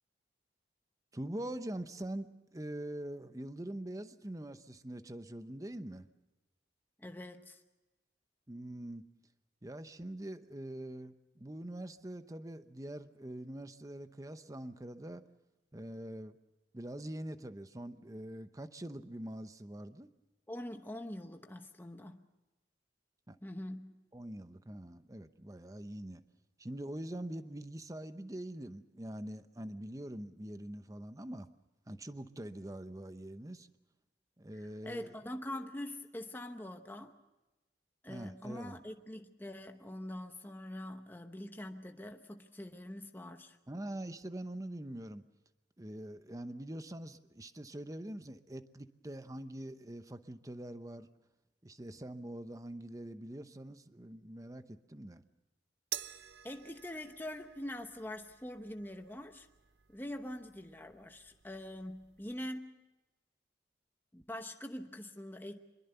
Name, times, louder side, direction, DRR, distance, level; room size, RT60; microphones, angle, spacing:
voice 1, 1.1-6.1 8.5-9.0 9.6-15.2 15.7-16.4 16.7-20.1 23.3-23.4 24.1-26.2 26.6-31.5 31.9-33.7 34.4-35.1 38.1-38.8 43.7-45.3 45.8-51.1 51.6-55.2, right 1 dB, 20° right, 0.8 m, -44 dB
voice 2, 7.0-7.6 20.5-22.2 23.4-24.0 34.8-37.1 38.0-43.6 56.4-59.5 59.9-62.8 64.1-65.6, left 1 dB, 10° left, 0.9 m, -44 dB
sound 1, 55.9-62.5, right 12 dB, 65° right, 0.7 m, -50 dB
24.5 x 22.0 x 6.9 m
head